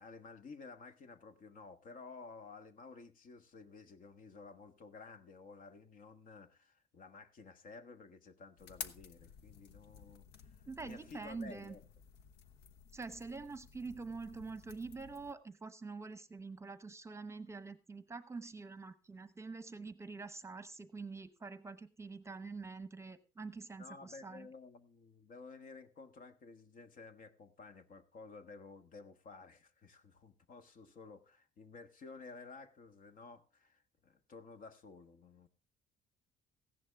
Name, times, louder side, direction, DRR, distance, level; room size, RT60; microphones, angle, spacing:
voice 1, 0.0-11.8 23.8-35.5, left 4 dB, 55° left, 1.5 m, -53 dB
sound 1, 8.6-15.3, left 7 dB, 80° left, 1.1 m, -53 dB
voice 2, 10.7-11.8 12.9-24.5, right 4 dB, 15° right, 0.9 m, -46 dB
15.5 x 11.0 x 3.5 m
cardioid pair, 110°, 17 cm